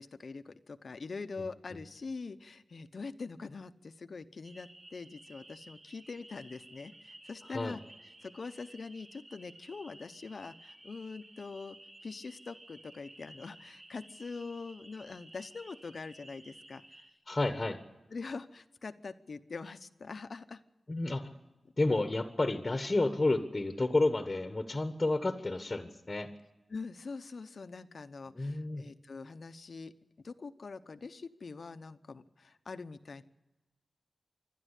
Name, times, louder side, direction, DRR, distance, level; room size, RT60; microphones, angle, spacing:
voice 1, 0.0-7.8 8.2-17.0 18.1-20.6 26.7-33.2, left 4 dB, 55° left, 11 dB, 0.9 m, -44 dB
sound 1, 4.4-17.1, right 1 dB, 40° right, 2.7 m, -55 dB
voice 2, 17.3-17.8 20.9-21.3 21.8-26.3 28.3-28.9, left 2 dB, 25° left, 7 dB, 1.3 m, -30 dB
26.5 x 12.5 x 8.3 m, 1.1 s
wide cardioid pair, 105°, 0 cm